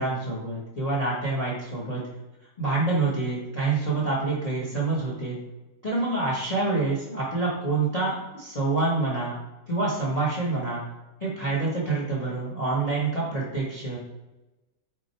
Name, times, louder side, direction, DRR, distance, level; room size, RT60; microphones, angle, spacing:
voice 1, 0.0-2.0 2.6-5.4 5.8-9.4 9.7-10.8 11.2-14.0, right 3 dB, 25° left, -4 dB, 1.1 m, -27 dB
6.0 x 3.9 x 4.4 m, 1.0 s
omnidirectional pair, 1.8 m